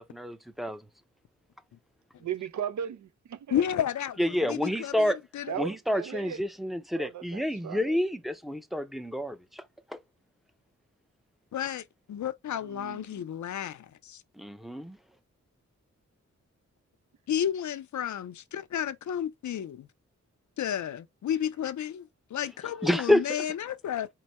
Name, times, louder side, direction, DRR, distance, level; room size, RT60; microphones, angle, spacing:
voice 1, 0.1-0.8 4.2-5.2 5.6-9.6 9.9-10.0 14.4-15.0 22.8-23.2, left 1 dB, ahead, 0.5 m, -28 dB
voice 2, 2.2-3.6 5.5-6.4 7.0-8.0 12.6-13.2, right 8 dB, 75° right, 0.5 m, -37 dB
voice 3, 3.5-5.5 11.5-14.2 17.3-19.9 20.6-24.1, left 9 dB, 75° left, 0.5 m, -32 dB
4.7 x 2.1 x 4.1 m
wide cardioid pair, 100°, 30 cm